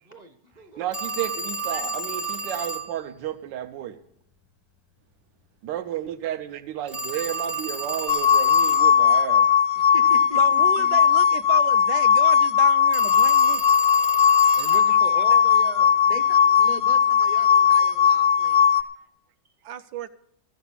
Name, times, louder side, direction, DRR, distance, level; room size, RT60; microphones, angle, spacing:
voice 1, 0.1-0.9 14.5-16.0, right 3 dB, 35° right, 7 dB, 0.7 m, -39 dB
voice 2, 0.8-4.0 5.6-9.5 14.7-15.0, right 11 dB, 85° right, 8 dB, 1.4 m, -32 dB
Telephone, 0.9-2.9 6.9-8.9 12.9-14.9, right 3 dB, ahead, 0.4 m, -31 dB
sound 1, 8.1-18.8, left 8 dB, 65° left, 0.8 m, -18 dB
voice 3, 9.8-11.0 16.1-18.7, left 1 dB, 85° left, 6 dB, 0.3 m, -39 dB
voice 4, 10.4-13.6 19.6-20.1, right 9 dB, 70° right, 12 dB, 1.2 m, -33 dB
14.0 x 7.0 x 8.3 m, 0.74 s
omnidirectional pair, 1.9 m